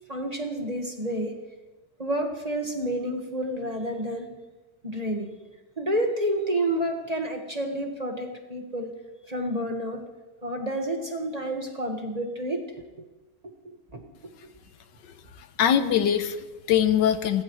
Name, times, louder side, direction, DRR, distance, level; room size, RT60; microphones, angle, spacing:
voice 1, 0.1-1.3 2.0-4.3 4.8-5.4 5.8-8.9 9.3-10.1 10.4-13.0 13.4-14.0, right 1 dB, 25° right, 2 dB, 1.5 m, -30 dB
voice 2, 15.0-17.4, left 9 dB, 80° left, 10 dB, 1.5 m, -23 dB
29.5 x 14.0 x 3.1 m, 1.1 s
omnidirectional pair, 1.9 m